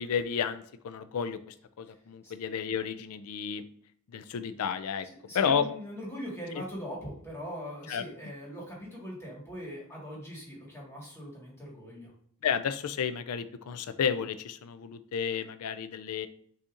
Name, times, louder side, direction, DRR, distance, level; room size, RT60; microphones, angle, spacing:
voice 1, 0.0-3.6 4.1-5.1 5.3-5.6 6.5-6.6 7.9-8.0 12.4-16.3, left 7 dB, 70° left, 13 dB, 0.4 m, -32 dB
voice 2, 5.3-12.1, equal, 10° left, -4 dB, 1.5 m, -41 dB
6.3 x 2.8 x 2.5 m, 0.62 s
head